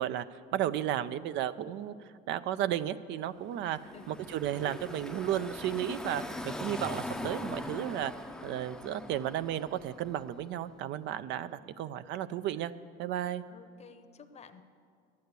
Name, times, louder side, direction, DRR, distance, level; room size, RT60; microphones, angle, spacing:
voice 1, 0.0-1.9 2.3-3.8 4.1-8.1 8.4-12.7 13.0-13.4, right 11 dB, 65° right, 13 dB, 0.5 m, -33 dB
voice 2, 3.6-4.1 11.4-11.7 13.5-14.6, left 6 dB, 30° left, 10 dB, 0.8 m, -53 dB
Car passing by / Traffic noise roadway noise, 3.6-10.5, left 1 dB, 5° left, 0.6 m, -41 dB
11.0 x 8.5 x 8.1 m, 2.3 s
supercardioid pair, 95°, 20 cm